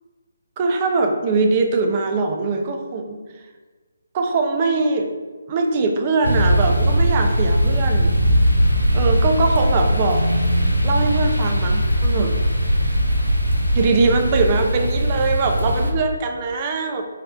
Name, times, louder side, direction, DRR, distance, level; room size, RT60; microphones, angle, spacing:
voice 1, 0.6-3.2 4.1-5.1 5.5-8.1 8.9-10.2 10.8-12.3 13.7-17.0, right 3 dB, 25° right, 4 dB, 0.4 m, -21 dB
sound 1, 6.2-15.9, equal, 85° right, 0.6 m, -19 dB
4.1 x 2.6 x 4.1 m, 1.3 s
figure-of-eight pair, 145°, 0 cm